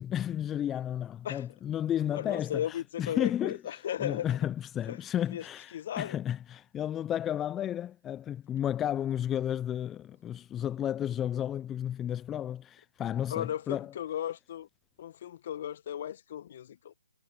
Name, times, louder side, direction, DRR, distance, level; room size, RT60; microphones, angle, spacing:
voice 1, 0.0-13.9, left 10 dB, 15° left, 0.6 m, -33 dB
voice 2, 2.1-4.3 4.9-5.0 5.3-5.4 5.7-6.2 13.3-14.7 15.0-16.9, left 10 dB, 45° left, 1.7 m, -35 dB
figure-of-eight pair, 145°, 0 cm